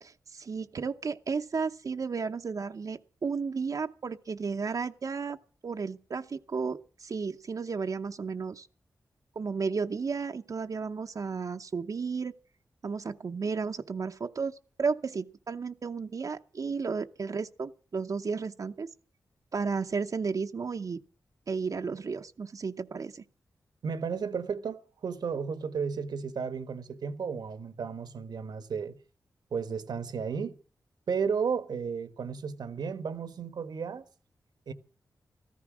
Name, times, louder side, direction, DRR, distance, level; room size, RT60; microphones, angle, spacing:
voice 1, 0.0-5.4 5.6-8.7 9.4-12.3 12.8-18.9 19.5-21.0 21.5-23.2, right 5 dB, 55° right, 0.8 m, -33 dB
voice 2, 23.8-29.0 29.5-30.6 31.1-34.0 34.7-34.8, right 6 dB, 85° right, 1.3 m, -33 dB
14.0 x 14.0 x 6.1 m
wide cardioid pair, 80°, 7 cm